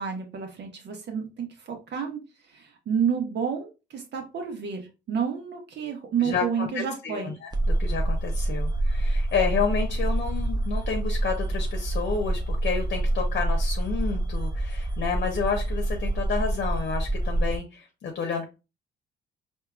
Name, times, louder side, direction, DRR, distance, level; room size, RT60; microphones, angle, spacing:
voice 1, 0.0-2.2 2.5-7.3, right 7 dB, 60° right, 3 dB, 1.3 m, -30 dB
voice 2, 6.2-18.5, left 5 dB, 60° left, 4 dB, 0.9 m, -30 dB
sound 1, 7.5-17.6, right 1 dB, 20° right, 0.5 m, -27 dB
4.6 x 2.9 x 2.3 m, 0.29 s
cardioid pair, 90°, 20 cm